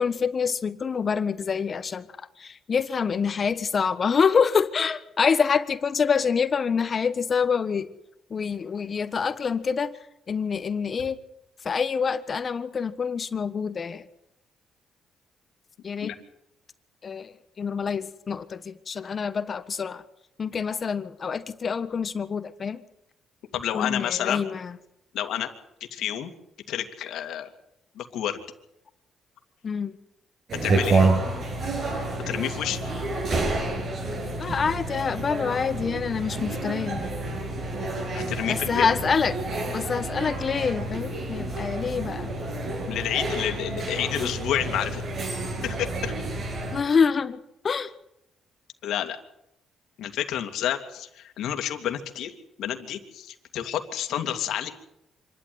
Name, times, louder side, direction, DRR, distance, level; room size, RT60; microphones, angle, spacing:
voice 1, 0.0-2.1 2.4-7.9 8.3-10.0 10.3-11.2 11.6-14.1 15.8-16.1 17.0-20.0 20.4-22.8 23.7-24.8 29.6-29.9 34.3-37.0 38.4-39.4 39.7-42.3 46.7-47.9, left 6 dB, 45° left, 1.4 m, -26 dB
voice 2, 23.5-24.4 25.1-25.5 25.9-26.3 26.7-27.5 28.0-28.4 30.6-31.0 32.3-32.8 38.1-38.9 42.9-45.0 45.6-46.1 48.8-49.2 50.0-52.3 52.6-54.7, left 10 dB, 80° left, 2.5 m, -29 dB
sound 1, 30.5-46.8, right 2 dB, 55° right, 7.8 m, -29 dB
26.0 x 12.5 x 9.7 m
cardioid pair, 90°, 0 cm